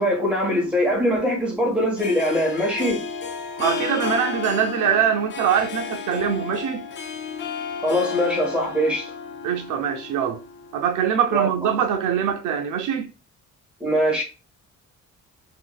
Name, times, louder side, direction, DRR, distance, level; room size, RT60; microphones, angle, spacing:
voice 1, 0.0-3.0 7.8-9.1 11.3-11.7 13.8-14.2, equal, 5° right, 1.3 m, -22 dB
Harp, 0.6-11.0, left 5 dB, 40° left, 0.4 m, -32 dB
voice 2, 3.6-6.9 9.4-10.4 10.7-13.1, right 8 dB, 80° right, 0.6 m, -23 dB
3.7 x 2.6 x 2.2 m
cardioid pair, 155°, 30 cm